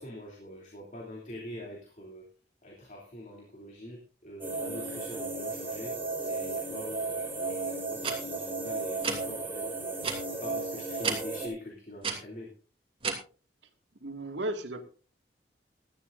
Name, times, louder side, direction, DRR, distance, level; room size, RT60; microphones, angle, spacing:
voice 1, 0.0-2.3 2.6-12.5, left 1 dB, 45° left, -1 dB, 3.0 m, -45 dB
sound 1, 4.4-11.5, right 3 dB, 10° right, 3.9 m, -35 dB
sound 2, 8.0-8.2 9.0-9.2 10.0-10.2 11.0-11.2 12.0-12.2 13.0-13.1, right 5 dB, 30° right, 2.7 m, -30 dB
voice 2, 14.0-14.8, right 1 dB, 85° right, 5 dB, 2.1 m, -34 dB
18.0 x 13.0 x 2.6 m, 0.36 s
head